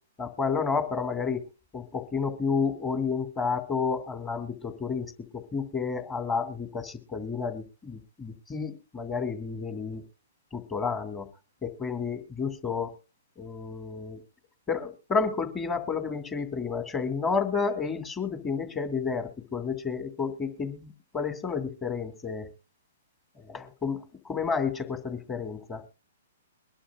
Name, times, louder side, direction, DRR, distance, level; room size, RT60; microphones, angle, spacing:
voice 1, 0.2-1.4 1.7-10.0 10.5-11.3 11.6-12.9 13.4-14.2 14.7-22.5 23.4-25.8, left 5 dB, 20° left, 8 dB, 2.1 m, -31 dB
22.5 x 11.5 x 2.4 m, 0.32 s
hypercardioid pair, 120°, 0 cm